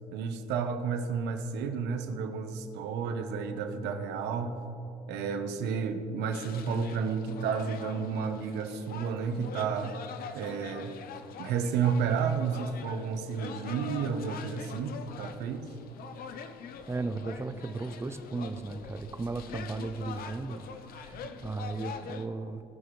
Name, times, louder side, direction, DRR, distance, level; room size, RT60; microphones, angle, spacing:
voice 1, 0.1-4.6 5.1-10.0 10.3-10.9 11.4-15.7 21.2-21.3, right 6 dB, 85° right, 7 dB, 0.9 m, -31 dB
sound 1, 6.3-22.3, left 6 dB, 60° left, 0.7 m, -44 dB
voice 2, 16.9-22.6, right 3 dB, 15° right, 9 dB, 0.5 m, -36 dB
18.0 x 6.0 x 3.2 m, 2.8 s
cardioid pair, 110°, 17 cm